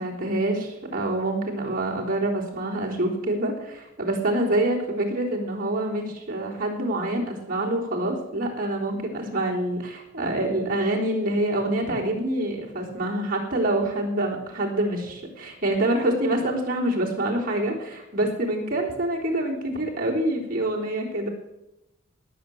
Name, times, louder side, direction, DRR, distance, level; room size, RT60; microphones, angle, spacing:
voice 1, 0.0-21.3, right 1 dB, 45° right, -2 dB, 3.7 m, -26 dB
18.5 x 7.2 x 7.8 m, 0.92 s
head